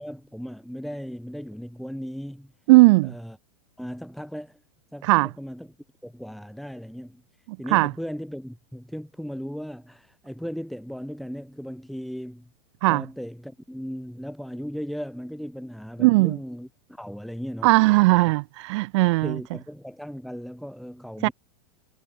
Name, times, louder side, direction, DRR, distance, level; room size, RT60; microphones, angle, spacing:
voice 1, 0.0-2.5 3.0-3.4 3.8-4.6 4.9-5.7 6.0-7.2 7.6-12.5 12.9-18.3 19.2-21.3, equal, ahead, 7.1 m, -37 dB
voice 2, 2.7-3.1 5.0-5.3 7.7-7.9 12.8-13.0 16.0-16.4 17.6-19.3 21.2-21.3, right 23 dB, 50° right, 0.5 m, -18 dB
supercardioid pair, 150°, 19 cm